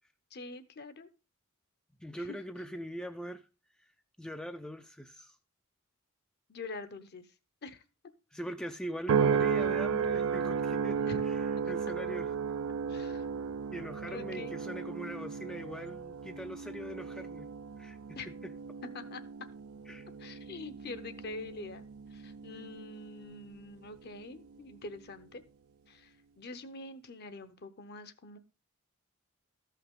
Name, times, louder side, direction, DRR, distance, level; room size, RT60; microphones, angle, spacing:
voice 1, 0.3-1.1 2.2-2.4 6.5-7.3 7.6-7.8 11.1-11.2 11.6-11.7 12.9-13.3 14.1-14.6 18.1-18.3 18.8-19.5 20.2-21.8 22.1-25.4 25.9-28.4, left 3 dB, 50° left, 12 dB, 0.8 m, -45 dB
voice 2, 2.0-3.4 4.2-5.4 8.3-11.4 11.7-12.3 13.7-17.5 17.8-18.5 19.9-20.1, equal, 5° left, 7 dB, 0.4 m, -42 dB
sound 1, 9.1-23.6 24.1-24.5, right 6 dB, 75° right, 0.4 m, -34 dB
13.5 x 5.6 x 3.6 m, 0.31 s
head